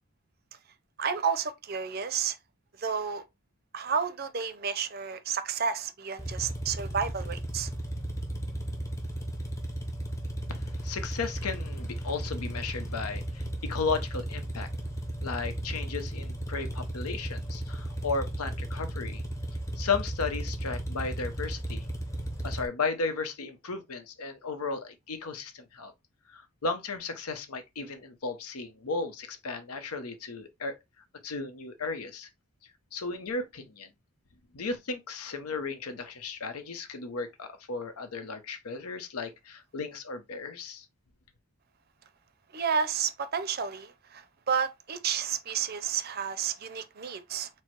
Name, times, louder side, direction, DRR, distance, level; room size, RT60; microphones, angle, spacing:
voice 1, 1.0-2.4 2.8-3.2 3.7-7.7 42.5-47.5, right 6 dB, 45° right, 0.5 m, -31 dB
sound 1, 6.2-22.7, right 1 dB, 15° left, 0.7 m, -35 dB
voice 2, 10.5-14.7 15.2-19.2 19.8-21.9 22.4-25.9 26.3-30.8 31.2-32.3 32.9-33.9 34.5-40.9, left 4 dB, 85° left, 0.8 m, -35 dB
4.5 x 2.1 x 4.5 m
head